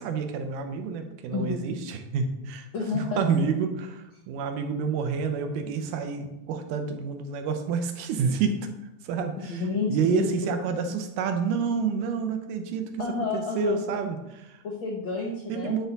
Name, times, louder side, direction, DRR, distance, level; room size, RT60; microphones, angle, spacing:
voice 1, 0.0-2.7 2.9-8.7 9.0-9.6 9.9-13.0 13.3-14.6 15.5-15.9, right 5 dB, 90° right, 7 dB, 2.4 m, -29 dB
voice 2, 1.3-1.6 2.7-3.4 9.4-10.5 13.0-13.8 14.6-15.8, left 4 dB, 80° left, 0 dB, 1.1 m, -30 dB
9.1 x 4.2 x 4.0 m, 0.94 s
omnidirectional pair, 3.6 m